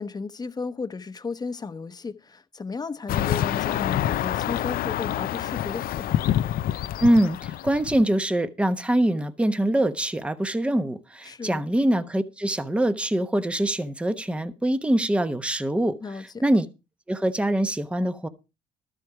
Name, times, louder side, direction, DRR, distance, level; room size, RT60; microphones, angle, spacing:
voice 1, 0.0-6.2 11.2-11.6 16.0-16.2, left 4 dB, 25° left, 1.0 m, -34 dB
sound 1, 3.1-8.1, left 12 dB, 60° left, 0.5 m, -27 dB
voice 2, 7.0-16.0 16.4-16.6 17.1-18.3, right 1 dB, 5° right, 1.0 m, -24 dB
12.5 x 7.8 x 4.8 m
cardioid pair, 110°, 17 cm